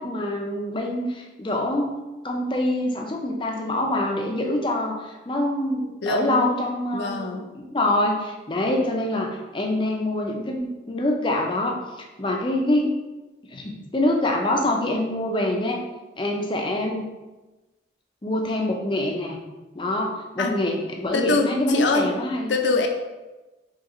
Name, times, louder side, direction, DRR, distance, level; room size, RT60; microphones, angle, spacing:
voice 1, 0.0-2.0 2.2-7.4 7.6-13.0 13.5-15.8 16.2-17.0 18.2-19.4 19.8-22.5, left 1 dB, 25° left, 1 dB, 0.5 m, -25 dB
voice 2, 6.0-6.5 6.9-7.4 20.4-20.6 21.1-22.1 22.5-22.9, left 3 dB, 75° left, 3 dB, 0.5 m, -23 dB
4.9 x 2.9 x 3.0 m, 1.1 s
head